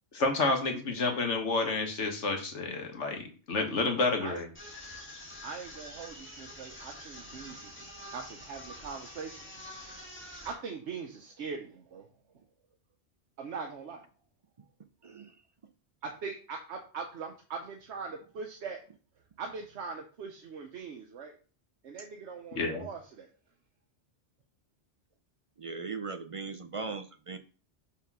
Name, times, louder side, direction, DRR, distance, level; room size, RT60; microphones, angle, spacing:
voice 1, 0.1-4.5 22.6-22.9, left 3 dB, 75° left, 4 dB, 1.6 m, -30 dB
sound 1, 4.5-10.6, left 1 dB, 10° left, 1.9 m, -46 dB
voice 2, 5.4-9.6 10.4-12.1 13.4-14.0 16.0-18.8 19.4-21.3 21.8-23.3, right 5 dB, 70° right, 3 dB, 1.1 m, -41 dB
voice 3, 15.0-15.4 25.6-27.4, right 4 dB, 50° right, 9 dB, 0.4 m, -38 dB
5.9 x 3.7 x 5.9 m, 0.39 s
omnidirectional pair, 1.2 m